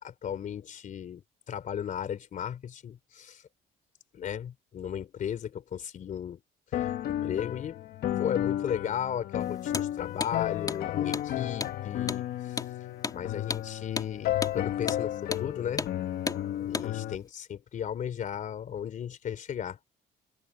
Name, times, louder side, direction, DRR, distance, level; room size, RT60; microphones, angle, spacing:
voice 1, 0.0-3.4 4.1-6.4 7.1-7.8 8.2-12.6 13.1-15.9 16.6-19.8, left 9 dB, 50° left, 3.4 m, -35 dB
sound 1, 6.7-17.1, left 12 dB, 65° left, 1.4 m, -33 dB
Hammer, 9.7-9.9 10.2-10.3 10.7-10.8 11.1-11.3 11.6-11.8 12.1-12.2 12.6-12.7 13.0-13.2 13.5-13.7 14.0-14.1 14.4-14.6 14.9-15.0 15.3-15.5 15.8-15.9 16.3-16.4 16.7-16.9, left 4 dB, 20° left, 3.2 m, -33 dB
cardioid pair, 110°, 17 cm